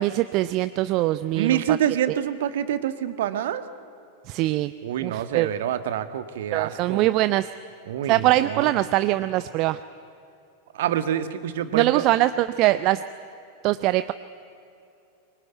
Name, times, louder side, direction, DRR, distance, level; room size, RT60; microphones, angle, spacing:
voice 1, 0.0-1.8 4.3-4.7 5.0-5.5 6.5-7.5 8.1-9.8 11.7-13.0 13.6-14.1, right 16 dB, 40° right, 13 dB, 0.6 m, -22 dB
voice 2, 1.3-3.6 4.8-7.0 7.9-8.7 10.7-12.0, right 10 dB, 55° right, 11 dB, 1.4 m, -26 dB
25.0 x 23.0 x 9.3 m, 2.7 s
figure-of-eight pair, 90°, 0 cm